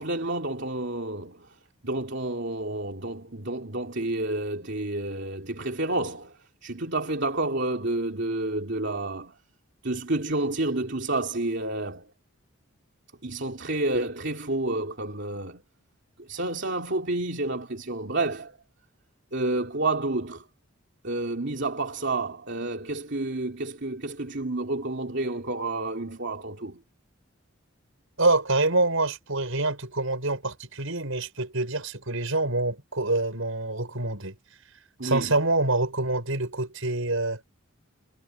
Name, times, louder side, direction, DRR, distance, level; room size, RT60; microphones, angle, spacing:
voice 1, 0.0-1.6 1.8-9.3 9.8-12.1 13.2-15.6 16.2-18.6 19.3-20.5 21.0-26.8 35.0-35.4, right 2 dB, 55° right, 3.0 m, -30 dB
voice 2, 28.2-34.3 35.0-37.4, right 2 dB, 70° right, 5.9 m, -26 dB
head